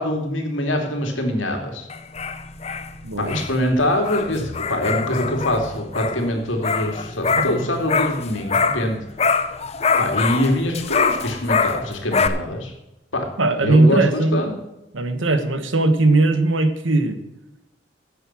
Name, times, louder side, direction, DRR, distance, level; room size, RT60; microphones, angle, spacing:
voice 1, 0.0-1.8 3.2-9.0 10.0-12.7 13.1-13.3 13.6-14.5, left 1 dB, 85° left, 3 dB, 2.7 m, -24 dB
sound 1, 1.9-8.9 9.2-12.3, left 5 dB, 35° left, 0.6 m, -24 dB
voice 2, 3.0-3.4 13.4-14.4 14.9-17.2, right 2 dB, 90° right, 9 dB, 1.4 m, -18 dB
11.0 x 7.8 x 6.0 m, 0.93 s
head